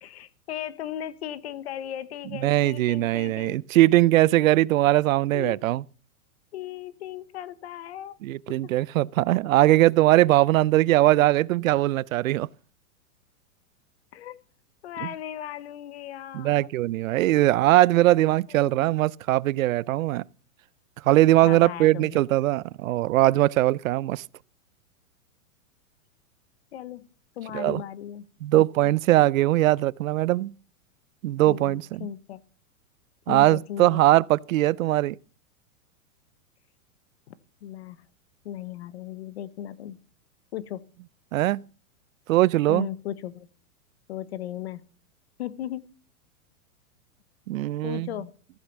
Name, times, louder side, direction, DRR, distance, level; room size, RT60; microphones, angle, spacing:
voice 1, 0.0-3.6 5.3-5.6 6.5-8.2 8.6-8.7 14.1-14.4 14.8-16.7 18.5-18.9 21.4-22.2 26.7-27.1 27.4-28.2 28.5-28.9 31.5-32.4 33.3-34.0 37.3-37.4 37.6-38.1 38.4-40.0 40.5-40.8 42.7-43.5 44.1-44.8 45.4-45.9 47.8-48.3, left 11 dB, 50° left, 1.0 m, -36 dB
voice 2, 2.3-5.8 8.2-12.5 15.0-15.1 16.3-20.2 21.1-24.2 27.5-27.8 28.4-30.5 31.2-32.1 33.3-35.2 41.3-41.6 42.3-42.9 47.5-48.1, right 16 dB, 65° right, 0.5 m, -21 dB
14.5 x 8.2 x 7.1 m
supercardioid pair, 170°, 43 cm